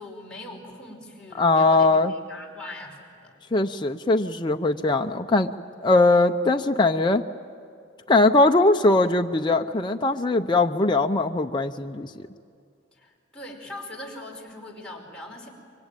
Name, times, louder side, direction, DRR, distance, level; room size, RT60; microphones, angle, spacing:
voice 1, 0.0-3.3 12.9-15.5, left 1 dB, 5° left, -3 dB, 5.0 m, -41 dB
voice 2, 1.4-2.1 3.5-5.5 5.8-7.2 8.1-12.3, left 2 dB, 25° left, 4 dB, 0.6 m, -20 dB
25.5 x 24.0 x 9.1 m, 2.3 s
head